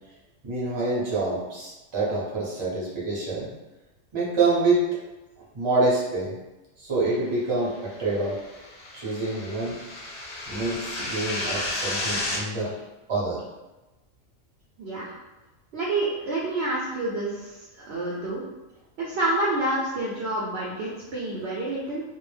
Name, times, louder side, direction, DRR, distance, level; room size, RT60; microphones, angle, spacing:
voice 1, 0.4-3.5 4.1-4.9 5.5-6.4 6.8-8.4 8.9-9.8 10.5-12.8 13.1-13.4, right 2 dB, 30° right, -7 dB, 0.6 m, -26 dB
sound 1, 7.9-12.4, left 1 dB, 55° left, 0.5 m, -32 dB
voice 2, 14.8-15.1 15.7-18.4 19.0-22.0, right 2 dB, 65° right, -5 dB, 0.7 m, -28 dB
2.3 x 2.0 x 3.1 m, 1.1 s
omnidirectional pair, 1.3 m